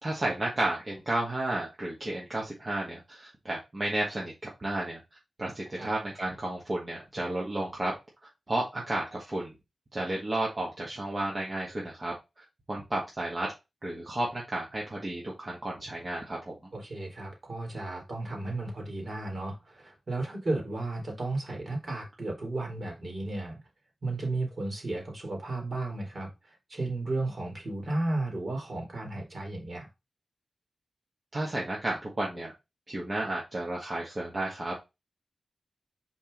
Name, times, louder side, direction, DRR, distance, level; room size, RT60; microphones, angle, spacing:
voice 1, 0.0-5.0 5.4-7.9 8.5-9.5 9.9-12.1 12.7-13.5 13.8-16.5 31.3-32.5 32.9-34.7, right 1 dB, 30° right, 1.7 m, -32 dB
voice 2, 16.7-23.6 24.0-29.9, right 2 dB, 50° right, 3.3 m, -34 dB
5.4 x 4.5 x 3.8 m
wide cardioid pair, 95°, 0 cm